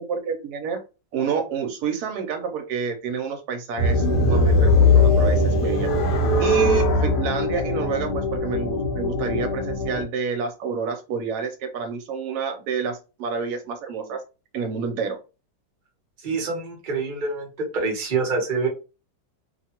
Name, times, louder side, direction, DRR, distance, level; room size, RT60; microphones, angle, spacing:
voice 1, 0.1-0.8 1.1-14.2 14.5-15.2, right 6 dB, 70° right, 6 dB, 1.1 m, -29 dB
sound 1, 3.8-10.0, left 2 dB, 70° left, 1.3 m, -20 dB
voice 2, 16.2-18.7, right 4 dB, 40° right, 0 dB, 0.7 m, -26 dB
3.0 x 2.2 x 2.8 m, 0.31 s
omnidirectional pair, 2.0 m